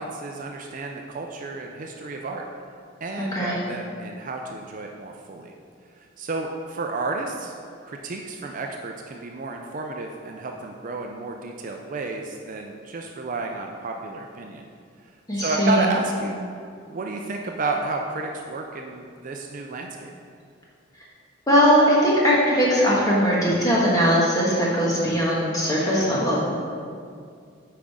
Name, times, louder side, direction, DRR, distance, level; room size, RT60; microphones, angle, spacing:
voice 1, 0.0-2.4 3.0-5.5 6.0-7.5 7.8-14.7 15.3-16.4 16.9-20.1, right 3 dB, 40° right, 2 dB, 0.4 m, -31 dB
voice 2, 3.2-3.6 15.3-15.8 21.5-26.4, equal, 15° left, -6 dB, 1.4 m, -20 dB
8.7 x 5.1 x 3.6 m, 2.3 s
head